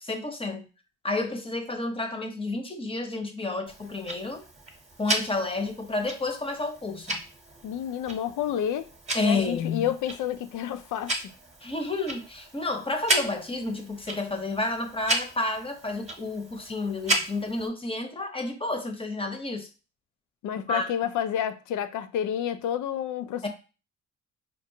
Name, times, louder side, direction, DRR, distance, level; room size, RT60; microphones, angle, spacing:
voice 1, 0.0-0.7 1.0-4.4 5.0-7.2 9.1-9.9 11.6-19.7 20.7-20.9 23.4-23.5, left 2 dB, 20° left, 0.7 m, -30 dB
Tick-tock, 3.7-17.7, right 1 dB, 20° right, 0.9 m, -34 dB
voice 2, 7.6-8.9 9.2-11.3 20.4-23.5, left 10 dB, 80° left, 0.5 m, -30 dB
4.6 x 2.5 x 2.7 m
cardioid pair, 90°, 30 cm